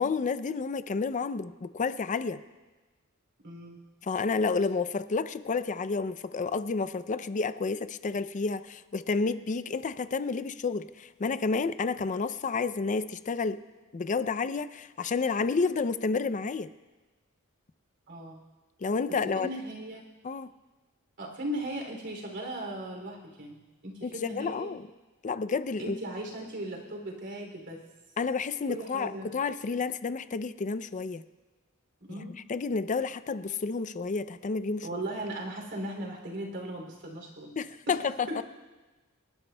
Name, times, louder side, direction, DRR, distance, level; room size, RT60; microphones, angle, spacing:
voice 1, 0.0-2.4 4.0-13.6 13.9-16.7 18.8-19.5 20.2-20.5 24.0-24.8 25.2-26.0 28.2-31.2 32.5-34.9 37.6-38.4, left 4 dB, 35° left, 13 dB, 0.4 m, -30 dB
voice 2, 3.4-3.8 18.1-18.4 19.3-20.0 21.2-24.7 25.8-27.8 28.7-29.4 32.0-32.4 34.8-37.6 37.9-38.0 38.3-38.4, right 1 dB, 55° right, 1 dB, 2.9 m, -37 dB
27.0 x 12.0 x 2.2 m, 1.2 s
head